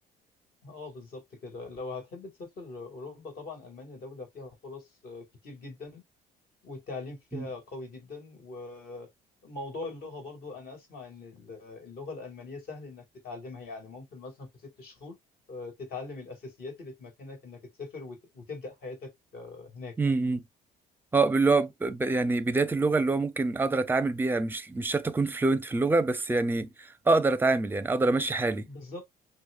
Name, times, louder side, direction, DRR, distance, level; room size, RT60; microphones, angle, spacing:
voice 1, 0.6-6.0 6.6-9.1 9.4-15.2 15.5-20.3 28.6-29.0, left 3 dB, 65° left, 2.3 m, -42 dB
voice 2, 20.0-20.4 21.1-26.7 27.1-28.7, right 3 dB, 10° right, 0.5 m, -25 dB
6.1 x 2.1 x 2.4 m
cardioid pair, 110°, 17 cm